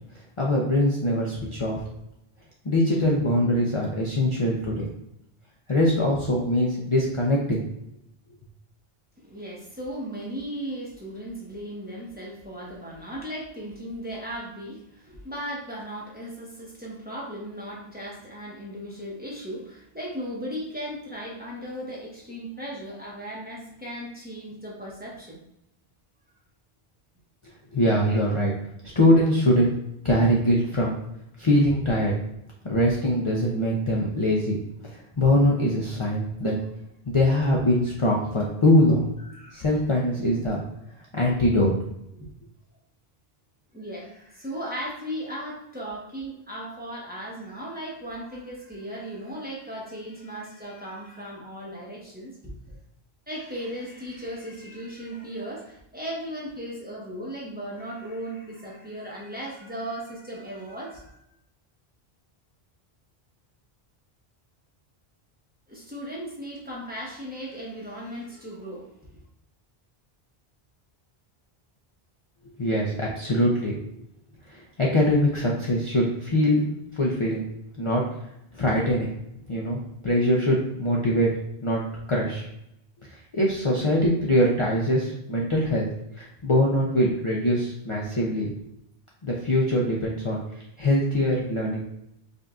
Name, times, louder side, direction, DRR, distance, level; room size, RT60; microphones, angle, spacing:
voice 1, 0.4-1.8 2.6-4.9 5.7-7.6 27.4-28.5 29.0-29.7 30.0-31.0 31.4-32.2 32.7-34.6 34.9-36.5 37.1-39.1 39.5-40.6 41.1-41.7 72.6-73.8 74.5-77.4 77.8-78.0 78.5-79.1 79.5-81.3 81.6-81.8 82.1-82.5 83.1-85.9 86.2-88.5 89.2-90.4 90.8-91.8, left 1 dB, 35° left, -3 dB, 0.6 m, -23 dB
voice 2, 9.2-25.4 28.1-28.2 39.3-39.6 43.7-52.8 53.3-61.2 65.7-68.9, equal, 10° right, -5 dB, 0.9 m, -37 dB
5.1 x 2.5 x 2.4 m, 0.81 s
omnidirectional pair, 1.0 m